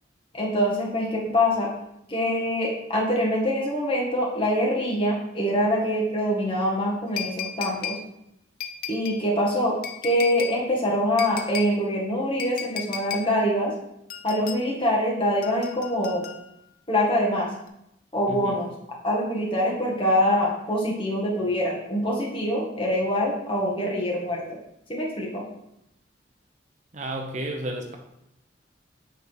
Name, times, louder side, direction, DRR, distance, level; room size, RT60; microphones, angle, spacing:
voice 1, 0.3-1.7 2.1-8.0 8.9-9.7 10.0-13.7 14.2-16.2 16.9-17.5 18.1-18.7 19.0-24.6 24.9-25.4, equal, 30° left, -3 dB, 1.8 m, -24 dB
sound 1, 7.2-8.0 8.6-9.2 9.8-10.6 11.2-11.7 12.4-13.3 14.1-14.6 15.4-16.6 17.7-17.8, left 8 dB, 50° left, 0.7 m, -34 dB
voice 2, 26.9-28.0, right 1 dB, 40° right, 3 dB, 0.8 m, -32 dB
8.8 x 4.0 x 4.7 m, 0.82 s
head